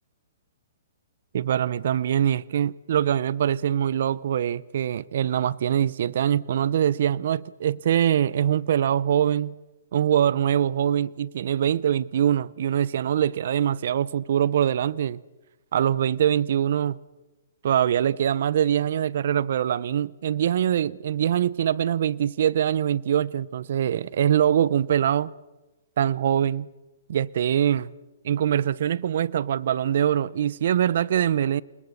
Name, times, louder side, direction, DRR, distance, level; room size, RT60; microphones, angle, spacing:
voice 1, 1.3-9.5 9.9-15.2 15.7-17.0 17.6-25.3 26.0-26.7 27.1-27.9 28.2-31.6, right 10 dB, 60° right, 0.7 m, -23 dB
28.5 x 21.0 x 6.7 m
hypercardioid pair, 135°, 0 cm